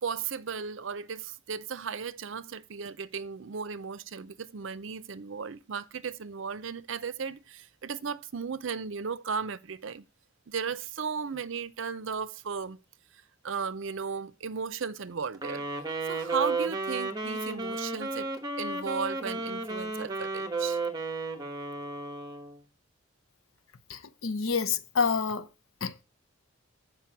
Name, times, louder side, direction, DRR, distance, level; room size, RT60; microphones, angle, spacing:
voice 1, 0.0-10.0 10.5-12.8 13.4-15.7 16.1-18.3 18.6-20.8, right 6 dB, 65° right, 0.5 m, -35 dB
Wind instrument woodwind instrument, 15.3-22.6, right 3 dB, 20° right, 1.1 m, -33 dB
voice 2, 23.9-25.5 25.8-25.9, left 5 dB, 80° left, 0.8 m, -28 dB
7.5 x 5.2 x 7.0 m
head